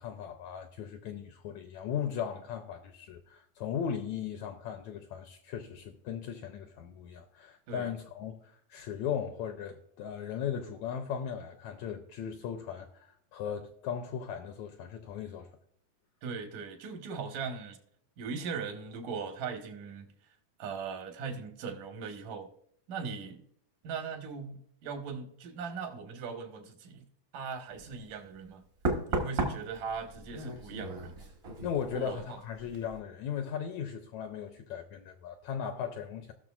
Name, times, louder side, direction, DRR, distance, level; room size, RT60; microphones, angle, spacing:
voice 1, 0.0-15.5 31.6-36.3, left 8 dB, 85° left, 1.6 m, -37 dB
voice 2, 16.2-17.8 18.2-20.1 20.6-22.5 22.9-23.4 23.8-27.0 27.3-28.6 29.1-31.3 31.9-32.4, right 5 dB, 80° right, 2.7 m, -39 dB
Knock, 27.8-28.0 28.8-32.3 32.6-33.0, right 2 dB, 65° right, 0.8 m, -35 dB
18.0 x 6.3 x 2.4 m
omnidirectional pair, 3.8 m